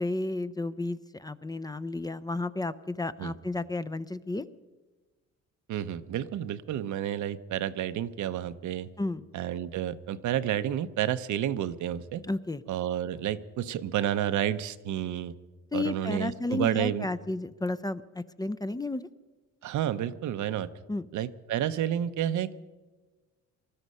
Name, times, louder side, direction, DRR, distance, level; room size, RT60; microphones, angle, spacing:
voice 1, 0.0-4.4 9.0-9.2 12.2-12.6 15.7-19.1 20.9-21.1, left 2 dB, 15° left, 12 dB, 0.5 m, -32 dB
voice 2, 5.7-8.9 9.3-12.2 12.7-15.3 15.7-17.1 19.6-20.7 21.1-22.6, right 11 dB, 75° right, 12 dB, 0.8 m, -30 dB
19.5 x 13.0 x 5.5 m, 1.3 s
cardioid pair, 90°, 30 cm